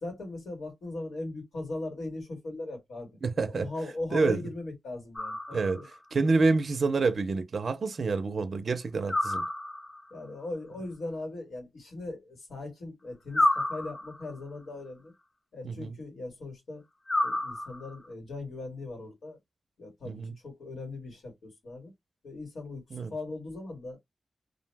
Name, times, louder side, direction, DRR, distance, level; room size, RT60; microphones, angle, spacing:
voice 1, 0.0-3.1 3.4-5.9 10.1-15.1 15.5-16.8 17.2-19.4 19.8-21.9 22.2-22.8 23.1-24.0, left 2 dB, 85° left, 1.6 m, -39 dB
voice 2, 3.2-3.7 4.1-4.4 5.5-9.4 15.6-15.9 20.0-20.3 22.9-23.1, right 3 dB, 50° right, 0.5 m, -28 dB
sound 1, 5.2-6.0 9.1-10.1 13.3-14.4 17.1-18.1, left 1 dB, 20° left, 0.4 m, -30 dB
2.5 x 2.1 x 3.3 m
wide cardioid pair, 145°, 0 cm